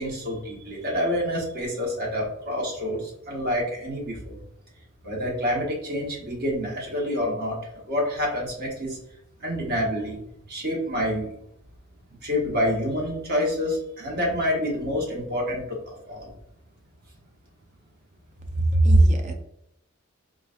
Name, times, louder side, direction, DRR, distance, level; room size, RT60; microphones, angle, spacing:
voice 1, 0.0-4.4 5.0-9.0 9.4-10.2 10.5-11.3 12.2-16.3, left 1 dB, 50° right, -2 dB, 1.1 m, -28 dB
voice 2, 18.6-19.3, right 1 dB, 35° right, 4 dB, 0.5 m, -18 dB
3.9 x 2.3 x 2.5 m, 0.78 s
head